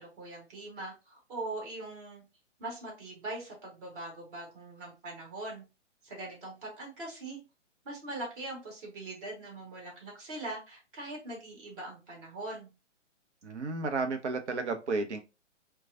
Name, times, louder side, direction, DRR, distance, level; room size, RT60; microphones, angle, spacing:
voice 1, 0.0-2.2 2.6-5.6 6.0-7.4 7.8-12.7, right 2 dB, 40° right, 2.0 m, -41 dB
voice 2, 13.4-15.2, right 3 dB, 65° right, 0.8 m, -32 dB
4.6 x 2.2 x 2.6 m
figure-of-eight pair, 130°, 37 cm